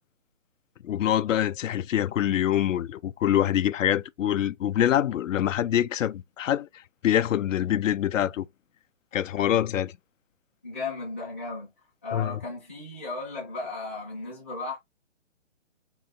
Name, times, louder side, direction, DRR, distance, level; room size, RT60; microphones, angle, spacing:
voice 1, 0.8-6.7 7.0-8.5 9.1-9.9 12.1-12.4, left 11 dB, 85° left, 0.5 m, -25 dB
voice 2, 10.6-11.7 12.0-14.8, left 3 dB, 10° left, 0.5 m, -35 dB
3.9 x 2.2 x 4.1 m
hypercardioid pair, 165°, 37 cm